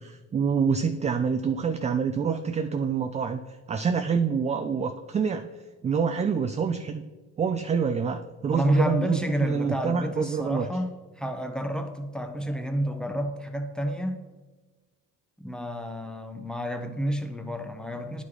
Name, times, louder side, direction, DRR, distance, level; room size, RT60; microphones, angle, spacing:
voice 1, 0.0-3.4 3.7-5.5 5.8-7.0 7.4-10.7, right 6 dB, 20° right, 7 dB, 0.3 m, -26 dB
voice 2, 8.5-14.2 15.4-18.2, equal, ahead, 6 dB, 0.8 m, -29 dB
9.3 x 4.8 x 3.8 m, 1.3 s
supercardioid pair, 85°, 36 cm